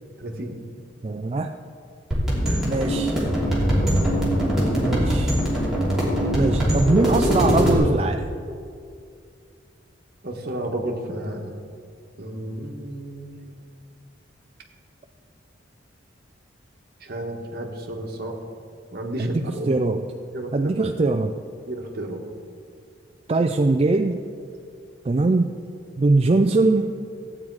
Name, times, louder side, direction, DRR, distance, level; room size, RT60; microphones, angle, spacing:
voice 1, 0.2-0.6 2.4-2.8 10.2-11.5 12.2-13.6 17.0-18.4 18.9-19.7 20.3-20.7 21.7-22.2, right 1 dB, 55° right, 1 dB, 1.4 m, -32 dB
voice 2, 1.0-1.6 2.6-3.2 4.8-5.4 6.3-8.2 19.2-20.1 20.5-21.3 23.3-24.2 25.0-25.5 26.0-26.9, right 3 dB, 30° right, 5 dB, 0.4 m, -22 dB
sound 1, 2.1-7.7, equal, ahead, 2.9 m, -22 dB
14.5 x 8.8 x 4.7 m, 2.3 s
head